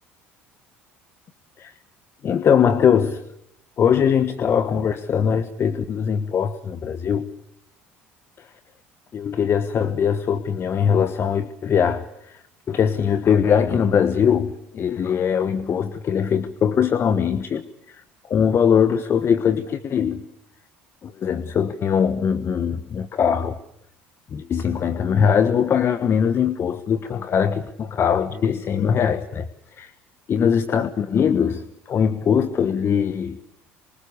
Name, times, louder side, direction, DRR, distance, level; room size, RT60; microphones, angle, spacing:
voice 1, 2.2-3.2 3.8-7.3 9.1-12.1 12.7-17.6 18.3-20.2 21.0-23.6 24.3-29.4 29.8-29.9 30.3-31.6 31.9-33.4, left 7 dB, 40° left, 12 dB, 1.3 m, -21 dB
27.0 x 25.0 x 8.4 m, 0.75 s
hypercardioid pair, 65°, 6 cm